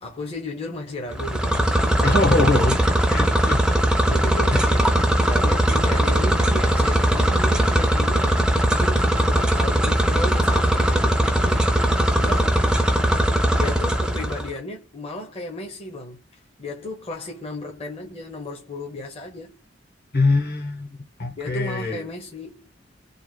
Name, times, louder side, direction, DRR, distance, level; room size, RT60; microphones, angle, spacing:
voice 1, 0.0-2.1 3.9-12.6 13.6-19.6 21.4-22.7, left 1 dB, 35° left, 0.8 m, -34 dB
sound 1, 1.1-14.5, right 1 dB, 5° right, 0.5 m, -20 dB
voice 2, 2.0-3.7 4.5-4.6 20.1-20.9 21.2-22.0, left 3 dB, 55° left, 1.2 m, -23 dB
3.4 x 2.2 x 2.3 m
head